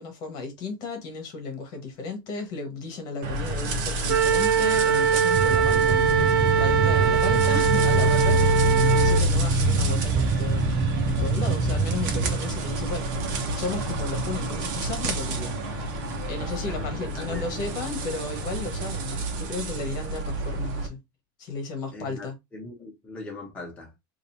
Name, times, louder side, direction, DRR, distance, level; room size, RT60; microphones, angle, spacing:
voice 1, 0.0-21.0 21.4-22.4, left 3 dB, 35° left, 1.4 m, -34 dB
sound 1, 3.2-20.9, right 1 dB, 55° right, 1.1 m, -27 dB
Wind instrument woodwind instrument, 4.1-9.2, right 7 dB, 75° right, 0.5 m, -22 dB
sound 2, 5.3-12.4, right 6 dB, 15° right, 0.4 m, -28 dB
voice 2, 16.6-17.5 21.9-23.9, left 3 dB, 10° left, 1.3 m, -40 dB
5.1 x 2.7 x 2.7 m
supercardioid pair, 175°, 12 cm